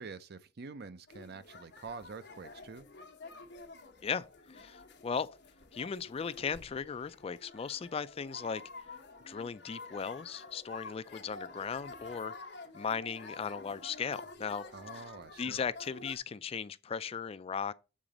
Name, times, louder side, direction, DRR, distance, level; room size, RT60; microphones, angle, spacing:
voice 1, 0.0-2.9 14.7-15.6, right 4 dB, 55° right, 0.6 m, -46 dB
sound 1, 1.1-16.2, left 3 dB, 60° left, 1.2 m, -49 dB
voice 2, 4.0-5.3 5.7-8.6 9.3-12.3 12.7-14.6 15.4-17.7, left 6 dB, 30° left, 0.3 m, -37 dB
7.4 x 3.9 x 5.0 m
head